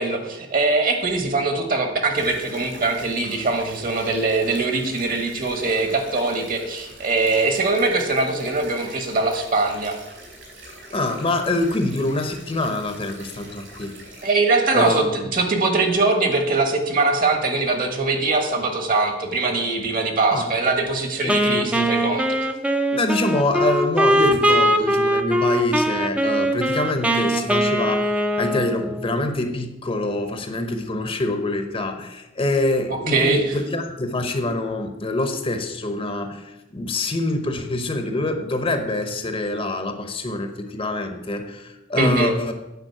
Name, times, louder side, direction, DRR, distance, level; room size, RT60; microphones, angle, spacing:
voice 1, 0.0-10.0 14.2-22.4 32.9-33.5 42.0-42.3, right 3 dB, 45° right, 4 dB, 1.5 m, -22 dB
sound 1, 2.1-14.3, right 1 dB, 75° right, 3.7 m, -43 dB
voice 2, 10.9-13.9 14.7-15.3 20.3-20.5 21.2-21.9 22.9-42.5, left 2 dB, 30° left, 6 dB, 0.8 m, -25 dB
Wind instrument woodwind instrument, 21.3-29.2, equal, 5° right, 0.6 m, -21 dB
9.1 x 5.2 x 7.7 m, 0.98 s
head